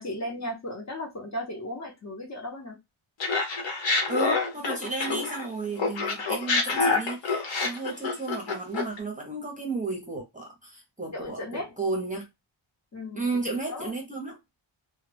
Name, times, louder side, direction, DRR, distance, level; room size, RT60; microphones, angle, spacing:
voice 1, 0.0-2.8 5.1-5.2 11.1-11.7 12.9-13.9, left 1 dB, 35° left, 0.7 m, -36 dB
Laughter, 3.2-5.5 5.8-9.0, left 3 dB, 70° left, 0.9 m, -27 dB
voice 2, 4.1-12.3 13.1-14.4, right 3 dB, 15° right, 0.7 m, -33 dB
2.2 x 2.1 x 3.2 m
wide cardioid pair, 170°, 48 cm